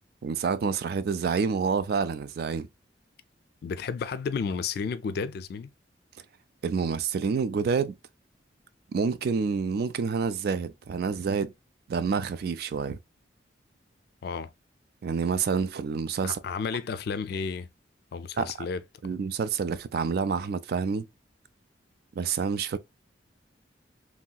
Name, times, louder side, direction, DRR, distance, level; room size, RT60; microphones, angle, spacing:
voice 1, 0.2-2.7 6.6-8.0 8.9-11.5 11.9-13.0 15.0-16.4 18.4-18.5 19.0-21.1 22.2-22.8, right 5 dB, 55° right, 0.3 m, -28 dB
voice 2, 3.6-5.7 14.2-14.5 16.2-17.7 18.1-19.1, left 5 dB, 55° left, 0.3 m, -32 dB
3.0 x 2.8 x 2.2 m
head